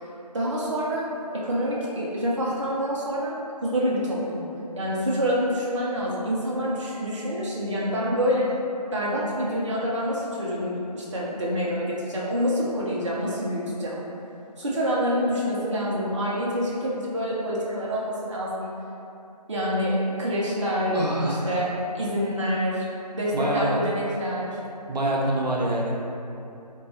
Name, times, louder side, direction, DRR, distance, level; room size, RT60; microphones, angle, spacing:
voice 1, 0.3-3.4 3.6-4.4 4.8-8.5 8.9-14.0 14.6-18.8 19.5-22.8 23.1-24.6, equal, 45° right, -6 dB, 0.4 m, -27 dB
voice 2, 20.9-21.6 23.3-23.7 24.9-25.9, right 1 dB, 90° right, -4 dB, 0.6 m, -25 dB
2.8 x 2.2 x 2.6 m, 2.7 s
figure-of-eight pair, 165°, 21 cm